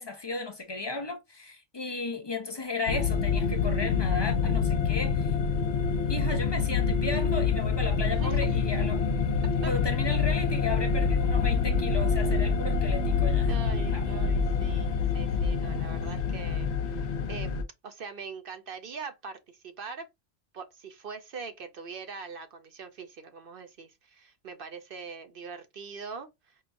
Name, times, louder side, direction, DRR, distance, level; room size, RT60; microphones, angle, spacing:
voice 1, 0.0-5.3 6.1-9.1 9.6-13.5 13.9-14.0, left 3 dB, 40° left, 0.4 m, -34 dB
sound 1, 2.9-17.6, left 5 dB, 70° left, 0.8 m, -26 dB
voice 2, 13.5-17.5 17.8-20.1 20.5-26.6, right 5 dB, 55° right, 0.8 m, -42 dB
5.5 x 2.2 x 2.5 m
omnidirectional pair, 1.2 m